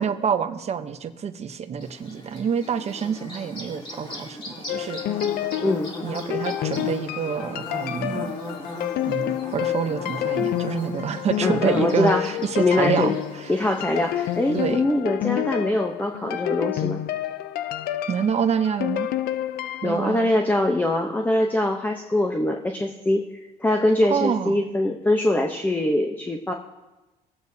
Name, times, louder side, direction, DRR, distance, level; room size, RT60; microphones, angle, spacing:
voice 1, 0.0-5.0 6.0-8.3 9.1-13.1 14.5-14.8 18.1-19.1 19.8-20.3 24.1-24.6, right 7 dB, 40° right, 8 dB, 0.8 m, -27 dB
Bird / Buzz, 1.8-14.7, left 2 dB, 30° left, 2.7 m, -39 dB
sound 1, 4.7-20.0, left 12 dB, 65° left, 0.5 m, -29 dB
voice 2, 11.4-12.2 12.6-13.2 13.5-17.0 19.8-23.3 23.6-26.5, left 1 dB, 10° left, 3 dB, 0.8 m, -23 dB
20.5 x 8.2 x 2.7 m, 1.1 s
cardioid pair, 110°, 17 cm